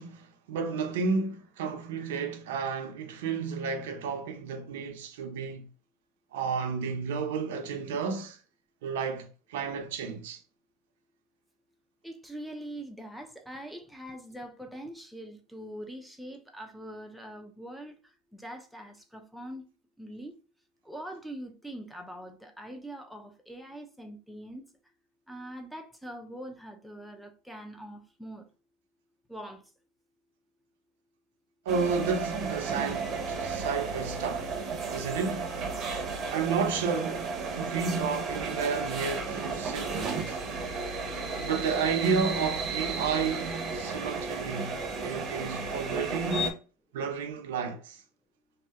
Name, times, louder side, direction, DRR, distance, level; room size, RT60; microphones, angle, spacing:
voice 1, 0.0-5.7 6.3-8.4 8.8-10.4 31.7-34.6 34.9-35.5 36.3-40.4 41.4-46.5 46.9-48.0, right 5 dB, 85° right, 0.5 m, -32 dB
voice 2, 12.0-18.0 18.3-19.6 20.0-20.3 20.8-24.6 25.3-28.5 29.3-29.6, right 1 dB, ahead, 0.5 m, -43 dB
sound 1, 31.7-46.5, right 4 dB, 40° right, 0.7 m, -33 dB
2.7 x 2.0 x 3.5 m
supercardioid pair, 110°, 0 cm